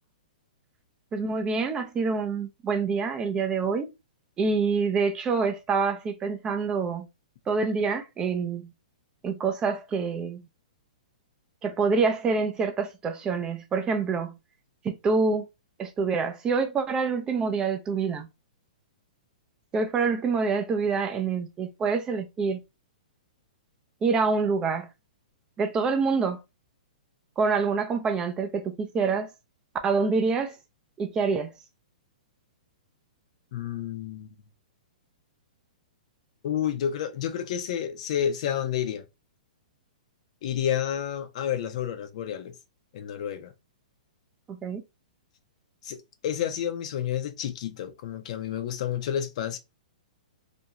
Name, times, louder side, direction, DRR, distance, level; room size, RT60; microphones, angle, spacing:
voice 1, 1.1-3.9 4.4-7.1 7.5-8.6 9.2-10.4 11.6-14.4 14.8-15.4 15.8-18.3 19.7-22.6 24.0-24.9 25.6-26.4 27.4-29.3 29.8-30.6 31.0-31.5 44.5-44.8, right 4 dB, 15° right, 0.4 m, -26 dB
voice 2, 33.5-34.4 36.4-39.0 40.4-42.5 42.9-43.5 45.8-46.0 46.2-49.6, left 9 dB, 55° left, 0.5 m, -30 dB
2.5 x 2.2 x 2.8 m
hypercardioid pair, 140°, 4 cm